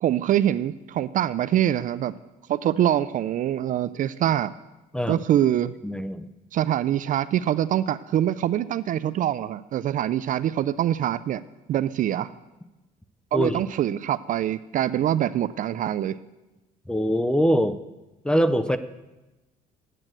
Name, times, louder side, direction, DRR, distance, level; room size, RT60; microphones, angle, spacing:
voice 1, 0.0-2.1 2.5-4.5 5.1-5.7 6.5-11.4 11.7-12.3 13.3-16.2, right 11 dB, 50° right, 16 dB, 0.4 m, -24 dB
voice 2, 5.8-6.3 13.3-13.6 16.9-17.8 18.2-18.8, equal, 5° left, 12 dB, 0.5 m, -23 dB
9.2 x 7.8 x 7.5 m, 1.1 s
cardioid pair, 110°, 17 cm